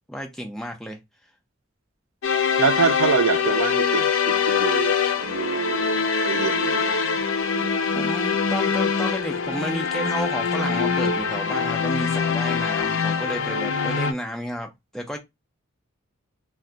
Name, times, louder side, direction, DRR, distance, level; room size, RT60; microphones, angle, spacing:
voice 1, 0.1-1.0 7.9-15.2, equal, ahead, 0.6 m, -32 dB
sound 1, 2.2-14.1, left 6 dB, 70° left, 0.5 m, -23 dB
voice 2, 2.6-4.9 5.2-7.9, right 6 dB, 80° right, 0.5 m, -26 dB
2.2 x 2.2 x 3.8 m
head